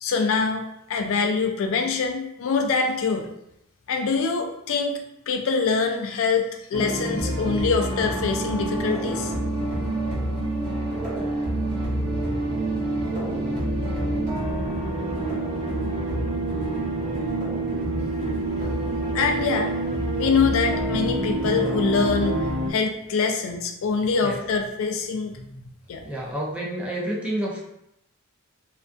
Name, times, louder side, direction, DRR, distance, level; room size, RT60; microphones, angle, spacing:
voice 1, 0.0-3.3 3.9-5.0 5.3-9.3 19.1-19.7 20.1-22.4 22.7-25.4 25.9-26.0, left 5 dB, 65° left, 4 dB, 0.4 m, -24 dB
sound 1, 6.7-22.7, right 1 dB, 35° right, 0.8 m, -28 dB
sound 2, 12.0-22.4, right 2 dB, 85° right, 0.5 m, -31 dB
voice 2, 26.0-27.6, right 1 dB, 5° right, -5 dB, 0.4 m, -29 dB
2.4 x 2.2 x 2.4 m, 0.80 s
head